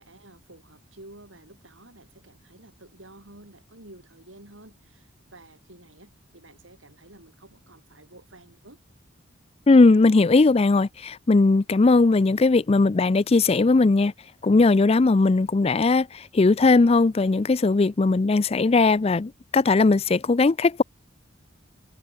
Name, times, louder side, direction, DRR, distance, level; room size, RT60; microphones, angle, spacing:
voice 1, 0.0-8.8, right 1 dB, 75° right, 6.8 m, -50 dB
voice 2, 9.7-14.1 14.4-20.8, left 3 dB, 30° left, 0.4 m, -19 dB
head